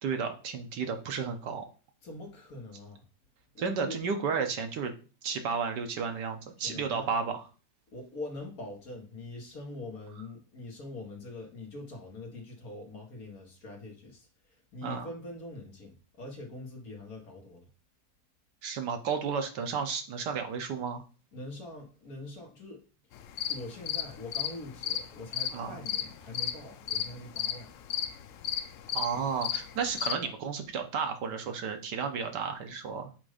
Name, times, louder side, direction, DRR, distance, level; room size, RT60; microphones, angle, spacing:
voice 1, 0.0-1.7 3.6-4.9 5.2-7.4 14.8-15.1 18.6-21.0 25.5-25.8 28.9-33.1, right 6 dB, 75° right, 6 dB, 1.5 m, -32 dB
voice 2, 2.0-3.0 3.5-4.0 6.6-7.1 7.9-17.7 21.3-22.8 23.5-27.7 30.2-30.3, left 2 dB, 55° left, 1 dB, 1.8 m, -44 dB
sound 1, 23.1-30.1, left 9 dB, 85° left, 0.7 m, -34 dB
7.4 x 2.6 x 4.9 m, 0.35 s
omnidirectional pair, 1.9 m